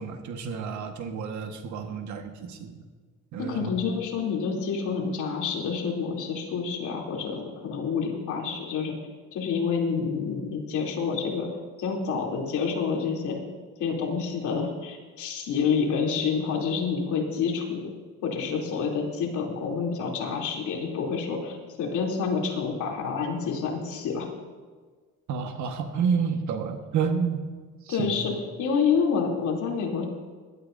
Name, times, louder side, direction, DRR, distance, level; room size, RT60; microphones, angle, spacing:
voice 1, 0.0-2.7 3.3-3.7 25.3-27.4 27.9-28.2, right 6 dB, 70° right, 6 dB, 1.5 m, -29 dB
voice 2, 3.4-8.9 9.3-11.5 11.8-13.4 13.8-17.9 18.2-24.3 27.9-28.3 28.6-30.0, left 5 dB, 75° left, -1 dB, 3.1 m, -28 dB
20.5 x 12.5 x 2.7 m, 1.5 s
cardioid pair, 85°, 30 cm